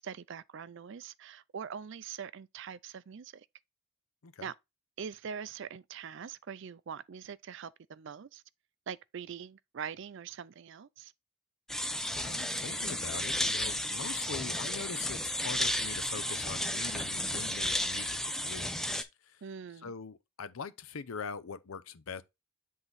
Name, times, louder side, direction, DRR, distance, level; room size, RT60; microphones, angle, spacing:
voice 1, 0.0-3.5 4.4-4.5 5.0-8.4 8.9-11.1 19.4-19.9, right 7 dB, 60° right, 0.4 m, -43 dB
sound 1, 11.7-19.0, left 1 dB, ahead, 0.4 m, -33 dB
voice 2, 12.1-19.4 19.8-22.2, left 5 dB, 80° left, 0.6 m, -43 dB
8.0 x 3.7 x 4.0 m
head